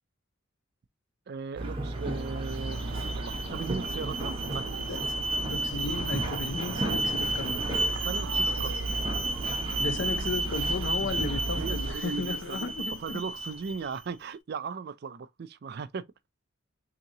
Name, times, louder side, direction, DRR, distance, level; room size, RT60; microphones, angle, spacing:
voice 1, 1.3-2.8 3.1-5.0 8.0-8.9 11.5-12.7 13.0-16.1, right 5 dB, 50° right, 0.4 m, -37 dB
sound 1, 1.6-12.0, right 2 dB, 25° right, 0.9 m, -35 dB
Alarm, 2.0-14.0, right 2 dB, 85° right, 0.7 m, -33 dB
voice 2, 4.9-7.9 9.8-13.2, left 4 dB, 60° left, 0.5 m, -35 dB
3.7 x 2.9 x 2.8 m
head